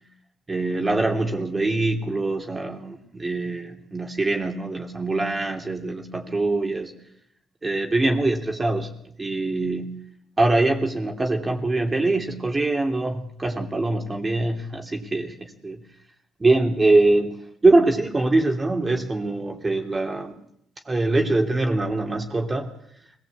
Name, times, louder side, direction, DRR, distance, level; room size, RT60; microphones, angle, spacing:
voice 1, 0.5-6.9 7.6-8.9 9.2-10.0 10.4-15.8 16.4-17.3 17.6-20.3 20.8-22.7, right 2 dB, 25° right, 2 dB, 3.2 m, -23 dB
25.0 x 18.5 x 8.5 m, 0.73 s
cardioid pair, 90°, 0 cm